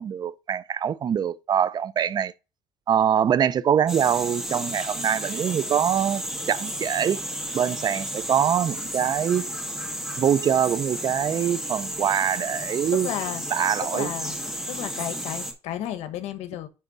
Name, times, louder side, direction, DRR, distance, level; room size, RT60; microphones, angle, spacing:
voice 1, 0.0-2.3 2.9-7.2 7.5-9.5 10.2-13.1 13.5-14.1, right 8 dB, 40° right, 0.5 m, -24 dB
sound 1, 3.9-15.5, equal, 5° right, 1.7 m, -33 dB
voice 2, 12.9-13.4 13.8-14.3 14.7-16.7, left 11 dB, 85° left, 1.2 m, -32 dB
10.0 x 3.5 x 3.9 m
cardioid pair, 130°, 11 cm